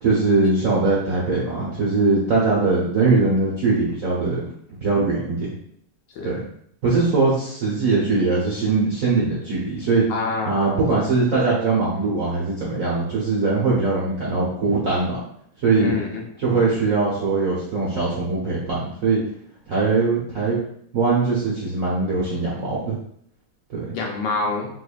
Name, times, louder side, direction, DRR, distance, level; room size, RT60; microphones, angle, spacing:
voice 1, 0.0-4.4 4.8-5.6 6.2-6.4 6.8-10.0 10.5-15.2 15.6-15.9 16.4-19.2 19.7-20.6 20.9-23.0 23.7-23.9, right 3 dB, 65° right, -6 dB, 0.8 m, -21 dB
voice 2, 10.1-11.0 15.8-16.2 23.9-24.7, left 3 dB, 70° left, -1 dB, 1.2 m, -26 dB
3.9 x 2.9 x 2.4 m, 0.67 s
omnidirectional pair, 2.4 m